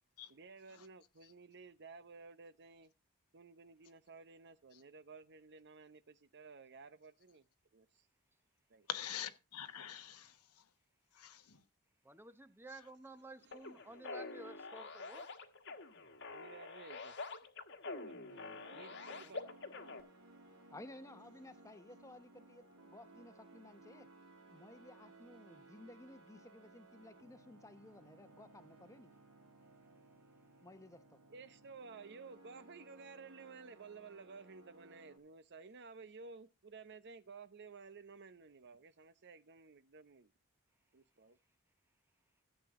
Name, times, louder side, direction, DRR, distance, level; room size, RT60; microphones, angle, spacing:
voice 1, 0.3-2.9 3.3-7.4 7.7-8.1 8.7-8.9 13.4-13.5 16.3-17.1 17.8-18.2 18.7-19.4 31.3-40.3 40.9-41.4, right 4 dB, 50° right, 0.8 m, -54 dB
voice 2, 8.9-10.6 11.1-11.6, left 10 dB, 90° left, 1.2 m, -45 dB
voice 3, 12.0-15.3 19.2-19.3, right 2 dB, 10° right, 0.9 m, -53 dB
sound 1, 13.5-20.0, left 3 dB, 55° left, 1.4 m, -47 dB
sound 2, 18.3-35.2, right 2 dB, 80° right, 3.2 m, -61 dB
voice 4, 20.7-24.1 24.5-29.1 30.6-31.2, left 1 dB, 15° left, 1.0 m, -56 dB
14.5 x 7.9 x 3.7 m
head